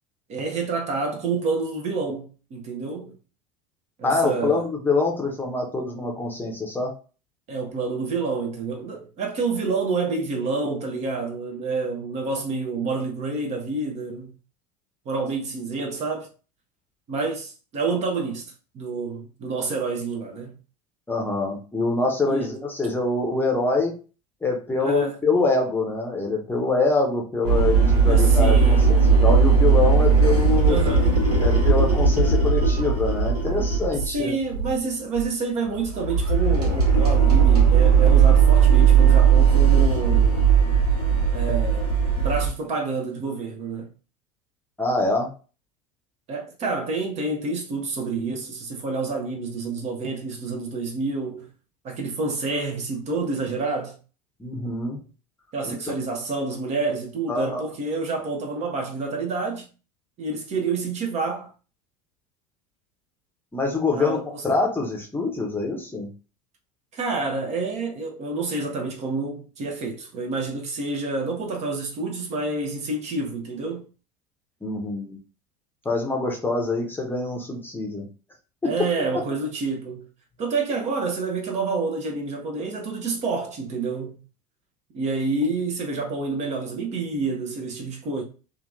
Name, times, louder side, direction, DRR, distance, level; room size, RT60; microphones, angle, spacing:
voice 1, 0.3-3.1 4.0-4.7 7.5-14.3 15.1-16.3 17.1-20.5 22.3-22.5 24.8-25.2 28.1-29.0 30.6-31.2 34.0-40.5 41.3-43.9 46.3-51.5 51.8-54.0 55.5-59.7 60.2-61.5 63.9-64.4 66.9-73.8 78.6-80.0 80.4-84.2 84.9-88.2, right 3 dB, 35° right, 0.7 m, -28 dB
voice 2, 4.0-6.9 21.1-24.0 24.4-30.8 31.4-34.4 44.8-45.3 54.4-55.0 55.6-55.7 57.3-57.6 63.5-66.1 74.6-75.2 75.8-78.1 78.6-78.9, left 3 dB, 10° left, 0.7 m, -25 dB
sound 1, 27.4-34.2 34.5-34.8 35.1-35.3 35.7-42.5, right 6 dB, 80° right, 1.0 m, -18 dB
2.8 x 2.5 x 2.4 m
figure-of-eight pair, 75°, 20 cm